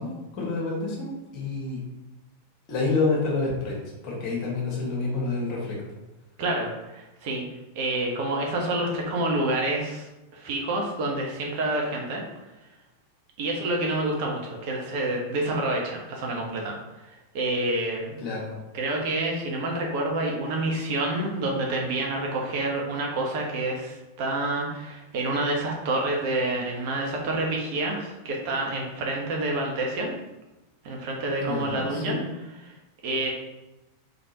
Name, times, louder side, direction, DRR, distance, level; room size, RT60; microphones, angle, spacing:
voice 1, 0.0-1.8 2.7-3.8 4.0-5.8 18.2-18.5 31.4-32.2, left 3 dB, 40° left, -3 dB, 1.4 m, -28 dB
voice 2, 6.4-7.4 7.7-10.1 10.3-12.2 13.4-16.7 17.3-18.2 18.7-30.1 30.8-32.2 32.6-32.7 33.0-33.3, right 2 dB, 45° right, 0 dB, 0.8 m, -28 dB
3.9 x 3.5 x 2.8 m, 0.99 s
figure-of-eight pair, 90°, 0 cm